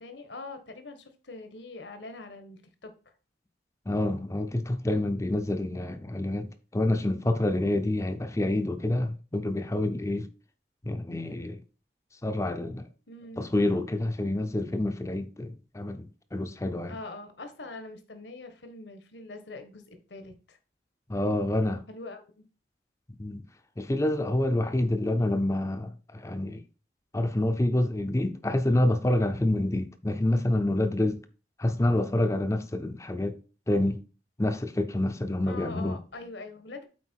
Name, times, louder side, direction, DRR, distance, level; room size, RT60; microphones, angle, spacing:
voice 1, 0.0-2.9 13.1-13.5 16.9-19.8 20.1-20.6 21.9-22.4 35.5-36.8, left 3 dB, 75° left, 1.3 m, -43 dB
voice 2, 3.9-10.3 10.8-11.6 12.2-12.9 13.4-17.0 21.1-21.8 23.2-23.4 23.8-26.6 27.1-31.2 31.6-33.4 33.7-34.0 34.4-36.0, left 1 dB, 15° left, 0.5 m, -27 dB
8.4 x 4.4 x 4.5 m
head